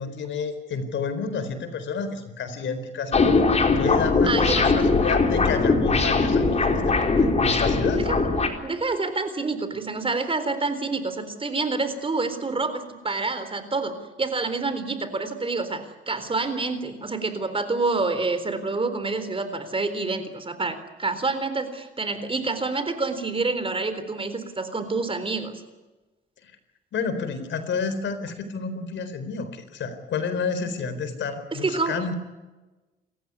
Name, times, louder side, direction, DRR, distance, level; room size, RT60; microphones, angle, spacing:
voice 1, 0.0-3.4 3.8-8.1 26.4-26.5 26.9-32.1, left 5 dB, 70° left, 10 dB, 4.2 m, -30 dB
sound 1, 3.1-8.5, left 3 dB, 35° left, 4.2 m, -20 dB
voice 2, 4.2-4.8 8.0-8.2 8.6-25.6 31.5-32.1, right 3 dB, 25° right, 10 dB, 3.9 m, -28 dB
29.0 x 15.0 x 9.7 m, 1.2 s
cardioid pair, 90°, 20 cm